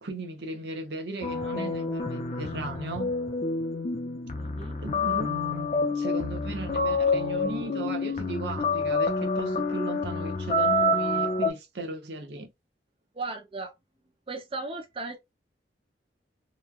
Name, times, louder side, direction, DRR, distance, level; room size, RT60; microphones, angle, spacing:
voice 1, 0.0-3.1 4.8-12.5, right 2 dB, 65° right, 0.7 m, -36 dB
sound 1, 1.2-11.5, left 2 dB, 40° left, 0.5 m, -28 dB
voice 2, 4.4-4.8 13.1-13.7 14.3-15.2, right 3 dB, 30° right, 0.5 m, -36 dB
3.0 x 2.2 x 2.3 m
head